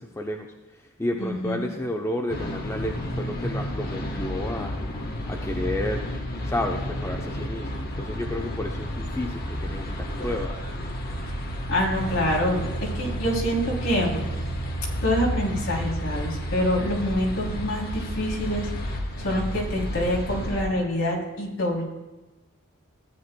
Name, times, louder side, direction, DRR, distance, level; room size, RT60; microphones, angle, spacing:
voice 1, 0.0-4.8 5.3-6.1 6.4-10.6, left 1 dB, 15° left, 2 dB, 0.6 m, -31 dB
voice 2, 1.2-1.7 11.7-12.7 12.9-14.2 15.0-21.8, equal, 65° left, -3 dB, 3.0 m, -26 dB
sound 1, 2.3-20.6, equal, 45° left, 1.2 m, -31 dB
15.0 x 9.3 x 2.2 m, 1.1 s
head